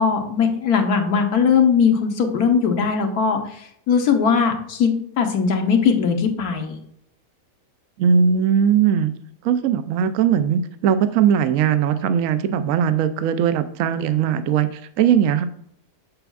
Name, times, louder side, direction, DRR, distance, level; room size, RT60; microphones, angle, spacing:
voice 1, 0.0-3.6 3.9-6.8, left 6 dB, 85° left, 5 dB, 1.5 m, -19 dB
voice 2, 8.0-9.1 9.4-15.4, right 8 dB, 70° right, 11 dB, 0.9 m, -19 dB
7.0 x 6.8 x 2.3 m, 0.68 s
omnidirectional pair, 1.6 m